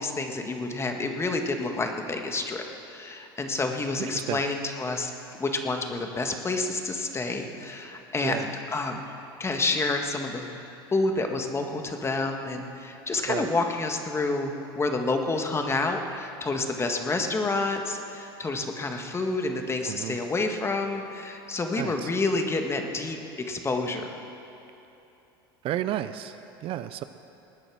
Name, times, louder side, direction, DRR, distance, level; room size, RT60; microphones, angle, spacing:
voice 1, 0.0-5.1 5.4-9.0 9.4-10.5 10.9-23.2 23.5-24.1, left 3 dB, 20° left, 4 dB, 1.7 m, -29 dB
voice 2, 19.9-20.2 21.8-22.1 25.6-27.0, right 12 dB, 50° right, 12 dB, 0.5 m, -32 dB
20.0 x 8.9 x 6.3 m, 3.0 s
hypercardioid pair, 85°, 12 cm